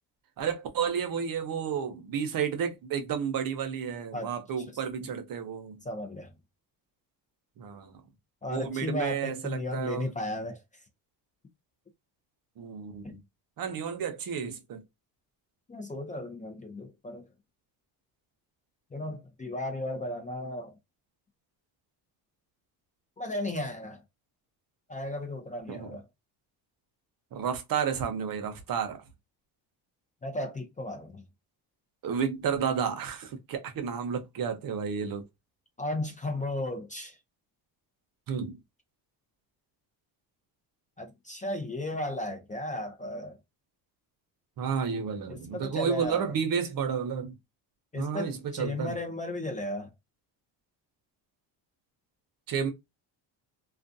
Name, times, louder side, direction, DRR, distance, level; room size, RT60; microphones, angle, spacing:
voice 1, 0.4-5.8 7.6-8.0 8.5-10.1 12.6-13.2 13.6-14.8 25.7-26.0 27.3-29.0 32.0-35.2 38.3-38.6 44.6-47.3 47.9-48.9 52.5-52.7, right 7 dB, 50° right, 0.7 m, -31 dB
voice 2, 5.8-6.3 8.4-10.6 13.0-13.2 15.7-17.3 18.9-20.8 23.2-24.0 24.9-26.0 30.2-31.2 35.8-37.2 41.0-43.4 45.3-46.4 47.9-49.9, left 1 dB, 20° left, 0.5 m, -35 dB
2.4 x 2.3 x 2.6 m
cardioid pair, 110°, 43 cm